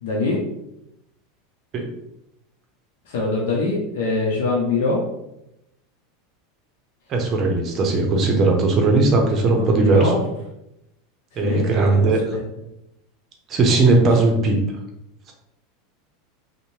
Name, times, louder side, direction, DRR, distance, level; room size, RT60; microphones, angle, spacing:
voice 1, 0.0-0.4 3.1-5.0 9.5-10.2 11.4-11.7 12.0-12.4, left 3 dB, 80° left, -3 dB, 0.6 m, -23 dB
voice 2, 7.1-10.1 11.4-12.4 13.5-14.6, right 3 dB, 35° right, 2 dB, 0.6 m, -18 dB
2.6 x 2.1 x 3.1 m, 0.84 s
supercardioid pair, 125°, 0 cm